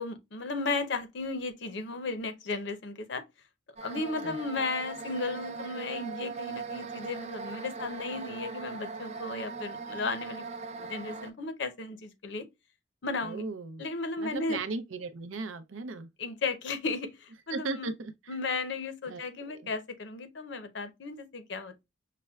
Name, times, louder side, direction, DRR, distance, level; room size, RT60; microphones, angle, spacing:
voice 1, 0.0-3.2 3.8-10.5 10.8-12.5 13.0-13.4 13.8-14.6 16.2-17.9 18.3-21.8, left 3 dB, 60° left, 0.7 m, -35 dB
sound 1, 3.8-11.3, right 4 dB, 35° right, 0.4 m, -40 dB
voice 2, 13.2-13.8 14.2-16.1 17.5-18.3 19.1-19.7, right 3 dB, 80° right, 0.6 m, -37 dB
5.8 x 2.1 x 2.3 m
head